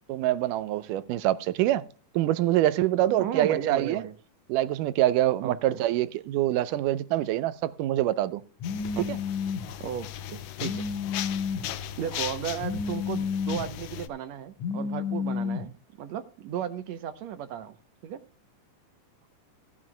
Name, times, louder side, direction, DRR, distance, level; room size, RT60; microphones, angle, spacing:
voice 1, 0.1-1.9 2.1-4.0 4.5-8.4 9.1-9.2, right 13 dB, 85° right, 2.3 m, -25 dB
voice 2, 3.2-4.1 5.4-5.8 9.0-9.1 9.8-10.8 12.0-15.7 16.0-17.8 18.0-18.2, right 9 dB, 70° right, 1.8 m, -35 dB
sound 1, 8.6-14.1, left 12 dB, 90° left, 2.4 m, -37 dB
Telephone, 8.6-9.7 10.6-11.7 12.6-13.6 14.6-15.7, left 6 dB, 70° left, 2.5 m, -31 dB
17.5 x 12.5 x 2.2 m
omnidirectional pair, 3.6 m